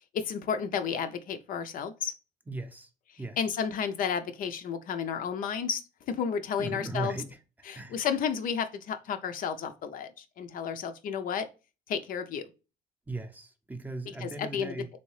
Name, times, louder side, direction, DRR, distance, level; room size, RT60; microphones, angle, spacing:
voice 1, 0.1-2.1 3.4-7.2 7.7-11.5 11.9-12.5 14.2-14.9, left 7 dB, 55° left, 0.4 m, -32 dB
voice 2, 2.5-2.9 3.2-3.4 6.6-7.4 7.7-8.0 13.1-14.9, right 2 dB, 10° right, 0.6 m, -37 dB
3.4 x 2.7 x 3.1 m
cardioid pair, 110°, 17 cm